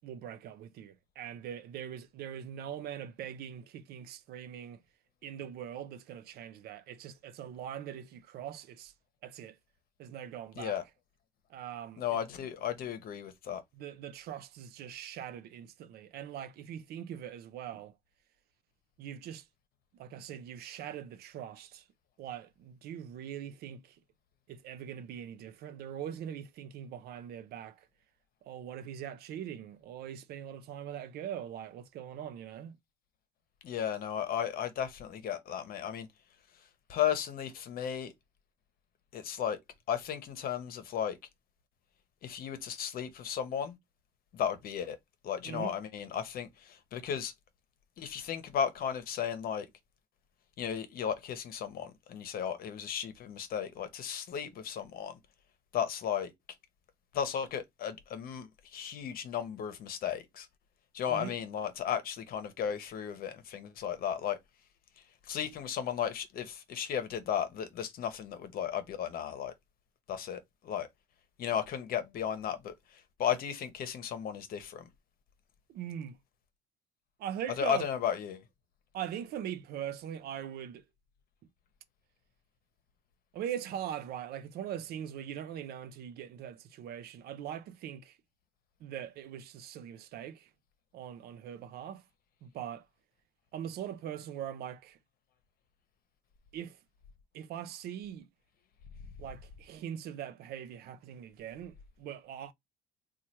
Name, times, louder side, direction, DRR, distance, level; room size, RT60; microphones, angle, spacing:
voice 1, 0.0-4.8 5.2-8.9 9.2-9.6 10.0-10.8 11.5-12.2 13.7-18.0 19.0-19.5 19.9-21.9 22.2-24.0 24.5-27.9 28.4-32.8 45.4-45.8 61.1-61.4 75.7-76.2 77.2-77.8 78.9-80.8 83.3-88.2 88.8-90.5 90.9-92.0 92.4-92.9 93.5-95.0 96.5-96.8 97.3-98.3 99.2-102.5, right 10 dB, 70° right, 0.5 m, -42 dB
voice 2, 12.0-13.6 33.6-36.1 36.9-38.1 39.1-39.6 39.9-41.2 42.2-43.8 44.3-45.0 45.2-47.3 48.0-49.7 50.6-55.2 55.7-56.3 57.1-60.5 60.9-64.4 65.3-69.5 70.1-70.9 71.4-74.9 77.6-78.4, left 8 dB, 60° left, 0.8 m, -35 dB
3.0 x 2.4 x 4.2 m
cardioid pair, 110°, 17 cm